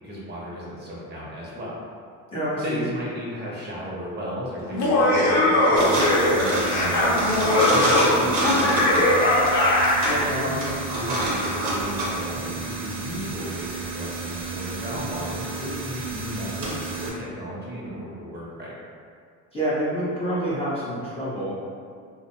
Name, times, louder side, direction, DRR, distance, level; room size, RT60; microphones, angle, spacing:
voice 1, 0.0-1.7 2.6-9.5 10.4-18.7, equal, 25° right, -5 dB, 0.6 m, -34 dB
voice 2, 2.3-2.8 10.1-10.5 19.5-21.6, equal, 15° left, -11 dB, 0.4 m, -27 dB
Laughter, 4.7-10.3, left 1 dB, 50° left, 0.7 m, -20 dB
sound 1, 5.8-17.1, right 2 dB, 80° right, 0.8 m, -28 dB
2.4 x 2.1 x 2.8 m, 2.2 s
cardioid pair, 115°, 38 cm